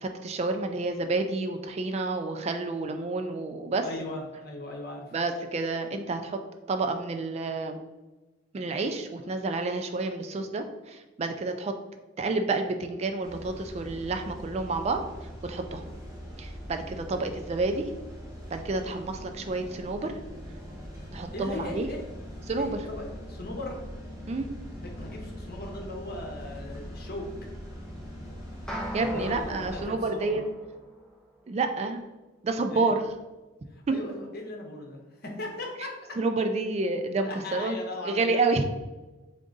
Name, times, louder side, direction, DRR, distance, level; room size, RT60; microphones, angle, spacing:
voice 1, 0.0-3.8 5.1-6.4 6.7-7.8 8.5-11.8 12.2-15.0 15.4-15.8 16.4-17.9 18.5-20.2 21.1-21.9 22.5-22.7 24.2-24.5 28.9-30.4 31.5-32.0 32.4-33.1 33.9-34.0 36.2-37.8 38.0-38.6, right 3 dB, 35° right, 6 dB, 0.3 m, -29 dB
voice 2, 3.8-5.1 17.1-17.2 21.3-22.0 22.6-23.8 24.8-27.3 29.1-30.4 32.7-32.9 33.9-36.1 37.2-38.4, left 2 dB, 55° left, 1 dB, 1.0 m, -38 dB
sound 1, 13.2-29.9, equal, 15° right, 1.3 m, -42 dB
sound 2, 28.7-31.2, equal, 5° left, 0.6 m, -38 dB
3.8 x 3.7 x 3.8 m, 1.1 s
head